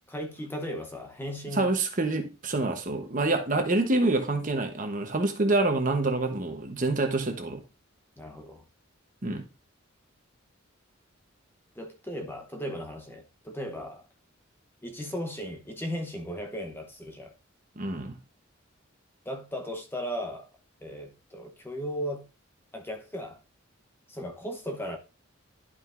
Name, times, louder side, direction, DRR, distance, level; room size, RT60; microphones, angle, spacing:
voice 1, 0.1-1.7 8.2-8.6 11.7-14.0 14.8-17.3 19.2-20.5 20.8-22.3 22.7-23.4 24.1-25.0, equal, 10° left, 0.9 m, -36 dB
voice 2, 1.5-7.6 9.2-9.5 17.8-18.2, right 2 dB, 40° right, 1.0 m, -27 dB
11.0 x 5.2 x 2.5 m
head